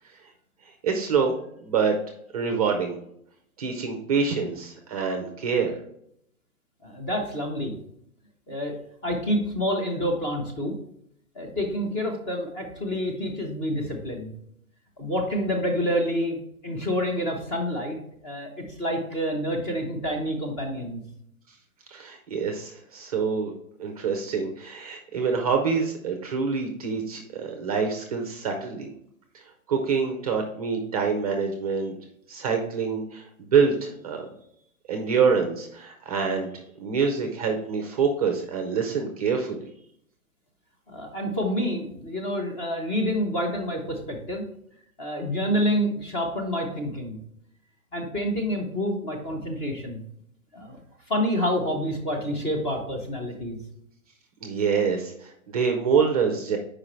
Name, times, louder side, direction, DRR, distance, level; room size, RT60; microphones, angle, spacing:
voice 1, 0.6-1.3 1.6-1.9 2.3-3.0 3.6-5.8 21.9-23.5 23.8-28.9 29.3-29.4 29.7-32.0 32.3-34.3 34.9-36.5 36.8-39.7 54.4-56.6, right 5 dB, 25° right, 4 dB, 0.5 m, -26 dB
voice 2, 6.8-7.7 8.5-8.8 9.0-10.7 11.3-14.3 15.0-18.0 18.2-21.0 40.9-44.4 45.0-47.2 47.9-50.0 50.5-50.8 51.1-53.6, equal, 15° left, 2 dB, 0.6 m, -28 dB
5.0 x 4.8 x 4.3 m, 0.72 s
hypercardioid pair, 135°, 43 cm